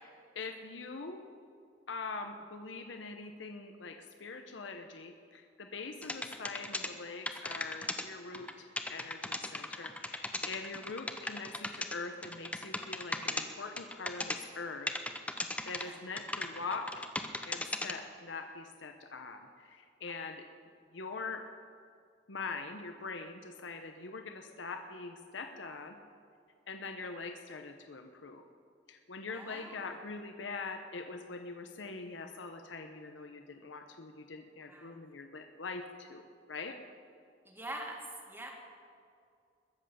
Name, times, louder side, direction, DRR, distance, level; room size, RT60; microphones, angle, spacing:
voice 1, 0.3-1.2 1.9-14.9 15.7-17.0 17.4-20.4 20.9-21.4 22.3-26.0 26.7-28.4 28.9-36.2 36.5-36.8, left 4 dB, 85° left, 6 dB, 0.9 m, -43 dB
sound 1, 6.0-6.9 7.3-8.0 8.3-8.5 8.8-11.9 12.2-13.4 13.8-14.4 14.9-15.8 16.2-17.9, left 2 dB, 5° left, 0.7 m, -36 dB
voice 2, 29.3-29.8 34.7-34.9 37.5-38.5, right 1 dB, 10° right, 1 dB, 1.9 m, -44 dB
21.5 x 7.9 x 6.8 m, 2.4 s
head